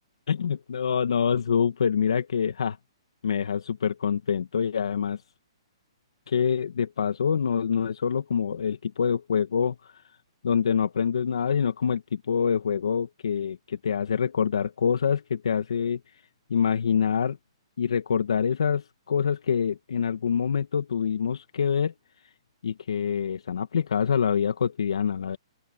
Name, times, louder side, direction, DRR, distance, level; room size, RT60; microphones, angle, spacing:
voice 1, 0.3-2.8 3.2-5.2 6.3-10.0 10.4-16.2 16.5-17.4 17.8-21.9 22.6-25.4, left 7 dB, 80° left, 1.7 m, -26 dB
open air
hypercardioid pair, 165°, 3 cm